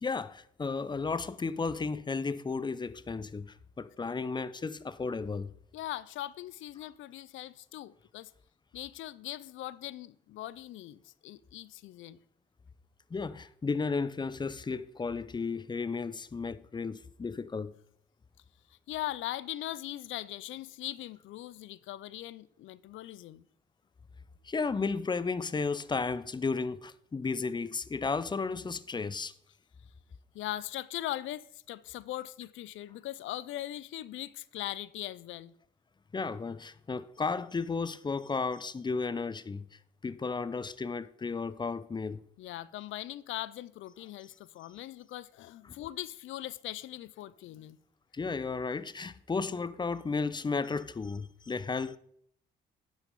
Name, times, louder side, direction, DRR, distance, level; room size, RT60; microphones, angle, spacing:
voice 1, 0.0-5.5 13.1-17.7 24.4-29.3 36.1-39.6 40.0-42.2 45.7-45.8 48.1-52.0, left 4 dB, 20° left, 0.5 m, -34 dB
voice 2, 5.7-8.3 8.7-12.2 18.9-23.4 30.3-35.5 42.4-47.8, left 14 dB, 80° left, 0.5 m, -40 dB
9.9 x 6.3 x 5.3 m
cardioid pair, 90°, 20 cm